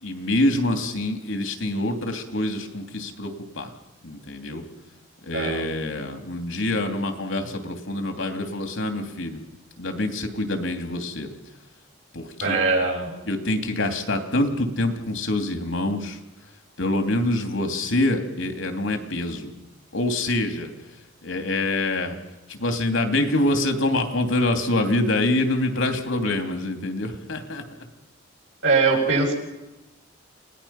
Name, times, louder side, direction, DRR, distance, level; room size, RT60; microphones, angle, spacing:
voice 1, 0.0-3.7 4.0-4.6 5.2-9.4 9.8-11.3 12.1-12.6 13.3-16.2 16.8-19.5 19.9-20.7 21.2-22.2 22.5-27.6, left 1 dB, 80° left, 5 dB, 2.9 m, -25 dB
voice 2, 5.3-5.6 12.4-13.1 28.6-29.3, right 4 dB, 70° right, -1 dB, 7.4 m, -21 dB
29.0 x 18.5 x 5.9 m, 0.98 s
head